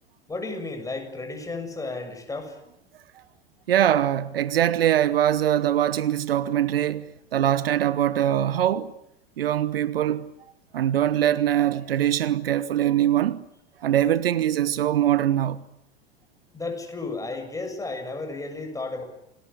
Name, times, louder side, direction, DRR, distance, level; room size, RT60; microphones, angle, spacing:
voice 1, 0.3-2.6 16.5-19.0, left 3 dB, 10° left, 6.7 m, -33 dB
voice 2, 3.7-7.1 7.3-8.9 9.4-10.3 10.7-13.4 13.8-15.6, right 11 dB, 65° right, 1.1 m, -22 dB
28.5 x 19.5 x 9.9 m
figure-of-eight pair, 90°, 31 cm